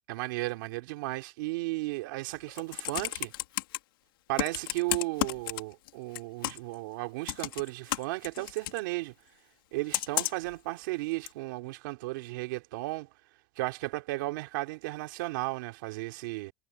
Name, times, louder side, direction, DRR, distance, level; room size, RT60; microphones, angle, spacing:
voice 1, 0.1-3.3 4.3-9.1 9.7-13.1 13.6-16.5, right 21 dB, 65° right, 3.1 m, -34 dB
Computer keyboard, 2.4-3.8 4.4-5.9 6.1-6.7 7.3-8.8 9.9-10.5 11.3-11.4, left 17 dB, 85° left, 2.1 m, -32 dB
supercardioid pair, 180°, 11 cm